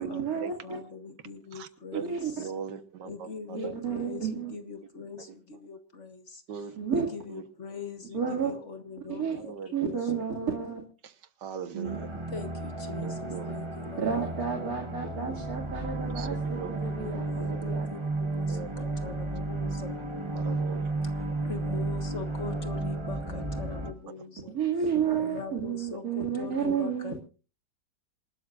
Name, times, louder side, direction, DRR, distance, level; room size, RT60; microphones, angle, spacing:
voice 1, 0.0-0.8 1.9-2.3 3.5-4.5 6.8-7.1 8.1-8.5 9.1-9.4 9.7-10.8 11.7-12.0 14.0-17.9 24.5-27.2, right 6 dB, 55° right, 1 dB, 2.7 m, -31 dB
voice 2, 0.6-2.5 3.1-6.4 6.9-10.3 12.3-14.3 16.8-19.9 21.0-24.6 25.2-27.2, left 5 dB, 45° left, 7 dB, 1.7 m, -42 dB
voice 3, 1.5-2.1 2.4-3.7 6.5-6.8 7.3-7.4 9.4-10.0 11.0-11.1 11.4-12.1 13.0-13.5 16.2-16.7 17.4-17.5 18.5-18.8 20.4-20.8 24.4-24.5 25.9-26.0, right 6 dB, 90° right, 11 dB, 1.8 m, -40 dB
sound 1, 11.8-23.9, right 2 dB, 20° right, 1.2 m, -33 dB
27.0 x 12.5 x 2.5 m, 0.36 s
omnidirectional pair, 1.8 m